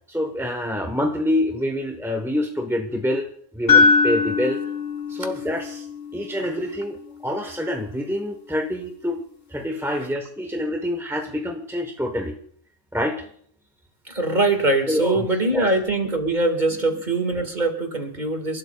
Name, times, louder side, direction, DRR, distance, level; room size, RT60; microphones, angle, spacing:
voice 1, 0.1-3.3 3.5-4.6 5.1-5.9 6.1-7.0 7.2-9.2 9.5-12.4 12.9-13.2 14.9-15.7, left 1 dB, ahead, 3 dB, 0.8 m, -26 dB
sound 1, 3.7-7.7, left 4 dB, 45° left, 2.3 m, -22 dB
voice 2, 14.1-18.6, right 2 dB, 30° right, 5 dB, 2.0 m, -22 dB
29.5 x 12.5 x 2.3 m, 0.64 s
omnidirectional pair, 1.5 m